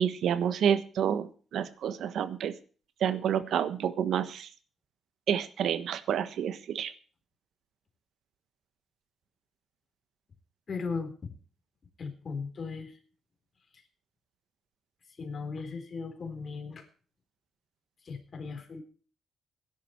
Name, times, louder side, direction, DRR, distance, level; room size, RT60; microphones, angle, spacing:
voice 1, 0.0-2.5 3.0-4.5 5.3-6.9, right 8 dB, 75° right, 13 dB, 1.3 m, -29 dB
voice 2, 10.7-11.3 12.0-13.0 15.2-16.9 18.0-18.8, left 4 dB, 45° left, 6 dB, 4.0 m, -37 dB
17.5 x 11.0 x 4.5 m, 0.39 s
cardioid pair, 100°, 0 cm